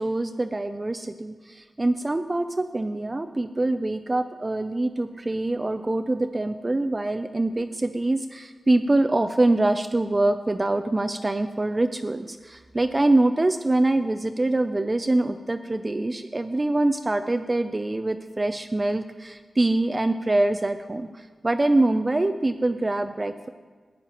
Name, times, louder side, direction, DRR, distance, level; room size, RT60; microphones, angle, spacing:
voice 1, 0.0-23.5, right 2 dB, 25° right, 8 dB, 0.3 m, -24 dB
15.5 x 9.2 x 2.9 m, 1.5 s
wide cardioid pair, 130°, 0 cm